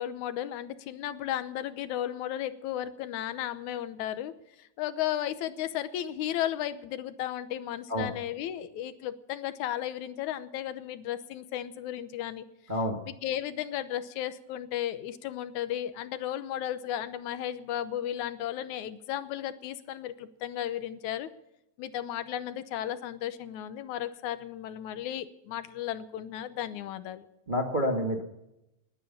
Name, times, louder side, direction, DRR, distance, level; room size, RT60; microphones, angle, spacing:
voice 1, 0.0-4.3 4.6-12.5 13.0-21.3 21.8-27.3, left 11 dB, 85° left, 13 dB, 2.3 m, -34 dB
voice 2, 27.5-28.2, equal, 25° right, 2 dB, 1.1 m, -28 dB
20.0 x 9.6 x 7.3 m, 0.86 s
omnidirectional pair, 3.3 m